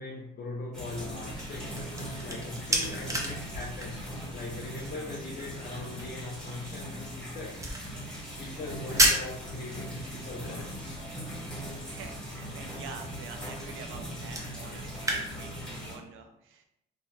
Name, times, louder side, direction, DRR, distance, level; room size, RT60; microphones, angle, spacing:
voice 1, 0.0-1.8 2.2-7.7 8.4-11.0, left 2 dB, 50° left, -1 dB, 0.5 m, -41 dB
sound 1, 0.7-15.9, equal, 5° left, 1.1 m, -40 dB
sound 2, 1.5-15.2, right 1 dB, 15° right, 0.6 m, -35 dB
voice 2, 9.7-10.2 11.8-16.7, right 6 dB, 85° right, 6 dB, 0.5 m, -47 dB
2.7 x 2.2 x 3.0 m, 0.82 s
cardioid pair, 90°, 20 cm